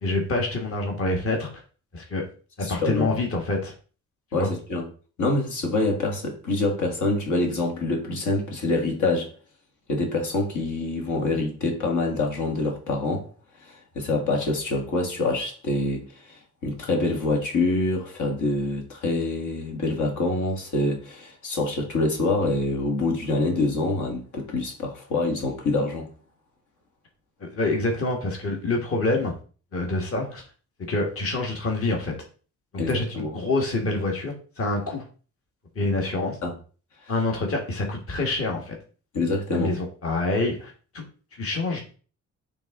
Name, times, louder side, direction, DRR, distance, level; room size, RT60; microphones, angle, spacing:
voice 1, 0.0-1.5 1.9-2.2 2.6-3.7 4.4-4.5 27.4-29.3 29.7-30.4 30.8-32.1 32.7-35.0 35.7-36.4 37.1-38.7 39.5-41.0 41.4-41.8, left 2 dB, 50° left, 1.6 m, -26 dB
voice 2, 2.6-3.2 4.3-4.9 5.2-9.3 9.9-13.3 13.6-26.1 32.8-33.3 36.4-36.5 37.0-37.1 39.1-39.7, left 2 dB, 75° left, 1.9 m, -26 dB
8.8 x 3.5 x 3.7 m
cardioid pair, 125°, 30 cm